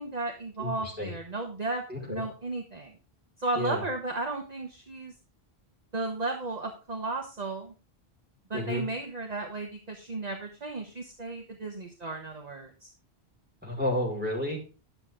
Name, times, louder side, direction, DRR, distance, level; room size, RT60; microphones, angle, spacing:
voice 1, 0.0-3.0 3.4-5.1 5.9-7.7 8.5-12.9, right 2 dB, 40° right, 2 dB, 1.5 m, -34 dB
voice 2, 0.6-1.1 1.9-2.2 3.6-3.8 8.5-8.8 13.6-14.6, left 1 dB, 10° right, -3 dB, 5.7 m, -31 dB
11.5 x 7.8 x 3.8 m, 0.32 s
omnidirectional pair, 1.0 m